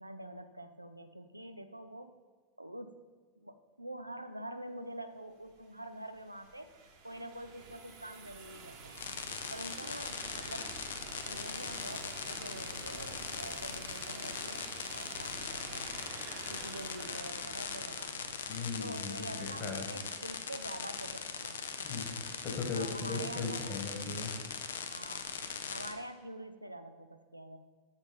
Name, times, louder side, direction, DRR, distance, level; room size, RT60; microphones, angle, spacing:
voice 1, 0.0-2.1 2.6-3.0 3.4-6.7 7.0-9.1 9.5-10.7 11.3-15.9 16.5-18.4 18.8-21.8 22.7-23.8 24.9-25.3 25.7-27.6, right 1 dB, 85° right, 9 dB, 0.4 m, -46 dB
sound 1, 5.5-19.2, right 4 dB, 40° right, 1.1 m, -49 dB
sound 2, 9.0-25.9, left 6 dB, 65° left, 0.6 m, -40 dB
voice 2, 18.5-19.3 19.6-19.9 21.8-24.3, left 4 dB, 35° left, 2 dB, 1.6 m, -38 dB
7.2 x 4.4 x 5.2 m, 1.5 s
figure-of-eight pair, 90°, 0 cm